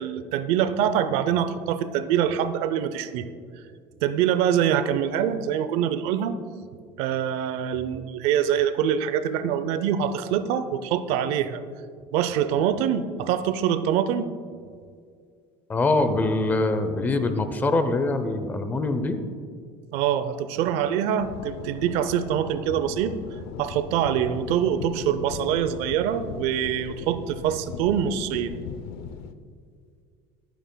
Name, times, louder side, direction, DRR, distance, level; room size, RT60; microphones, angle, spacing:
voice 1, 0.0-3.2 4.0-6.3 7.0-11.6 12.1-14.3 19.9-23.1 23.6-28.5, right 9 dB, 65° right, 12 dB, 0.6 m, -24 dB
voice 2, 15.7-19.2, left 2 dB, 15° left, 9 dB, 0.6 m, -24 dB
sound 1, 21.2-29.3, left 8 dB, 75° left, 0.6 m, -38 dB
23.5 x 9.2 x 2.2 m, 2.1 s
cardioid pair, 170°, 11 cm